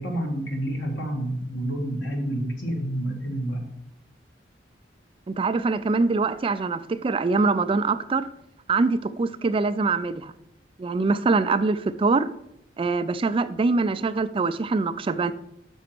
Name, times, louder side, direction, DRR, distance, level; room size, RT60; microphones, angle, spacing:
voice 1, 0.0-3.6, right 1 dB, 80° left, 1 dB, 2.2 m, -29 dB
voice 2, 5.3-8.3 8.7-10.3 10.8-12.3 12.8-15.3, right 3 dB, 30° right, 13 dB, 0.3 m, -23 dB
6.2 x 5.8 x 6.0 m, 0.78 s
head